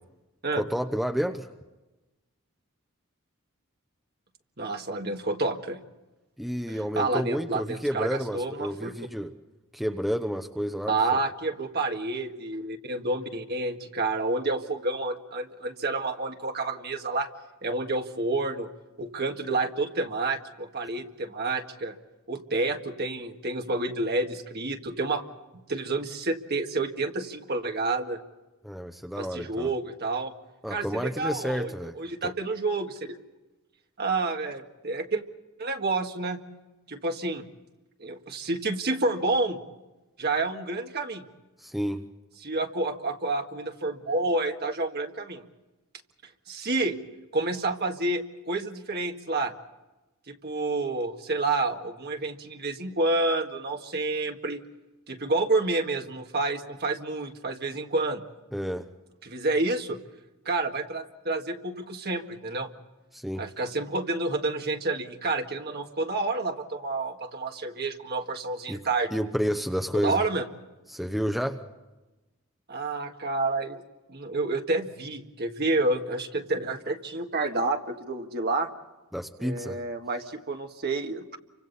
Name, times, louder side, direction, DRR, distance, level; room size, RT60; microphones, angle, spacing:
voice 1, 0.6-1.5 6.4-9.3 9.7-11.2 28.6-29.7 30.6-32.0 41.6-42.1 58.5-58.9 63.1-63.5 68.7-68.8 69.1-70.2 70.9-71.6 79.1-79.8, equal, ahead, 6 dB, 0.8 m, -30 dB
voice 2, 4.6-5.8 6.9-8.9 10.9-17.3 17.6-18.7 19.0-21.9 22.3-25.2 25.7-28.2 29.2-30.3 30.7-33.2 34.0-35.2 35.6-36.4 36.9-37.5 38.0-39.6 40.2-41.3 42.4-45.5 46.5-47.0 47.3-49.5 50.3-54.6 55.1-58.2 59.2-60.0 60.4-62.7 63.4-69.1 69.9-70.4 72.7-73.8 74.1-78.7 79.4-81.4, right 2 dB, 45° right, 4 dB, 1.8 m, -29 dB
30.0 x 25.5 x 4.1 m, 1.1 s
head